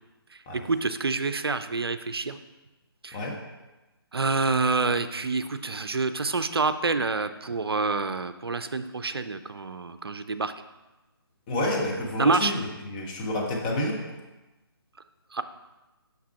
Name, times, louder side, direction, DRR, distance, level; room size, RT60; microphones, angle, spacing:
voice 1, 0.3-2.4 3.0-3.2 4.1-10.5 12.2-12.5 15.3-15.4, right 3 dB, 70° right, 11 dB, 0.5 m, -27 dB
voice 2, 11.5-14.0, left 1 dB, 20° left, -2 dB, 1.1 m, -29 dB
5.9 x 5.9 x 4.2 m, 1.1 s
figure-of-eight pair, 145°, 13 cm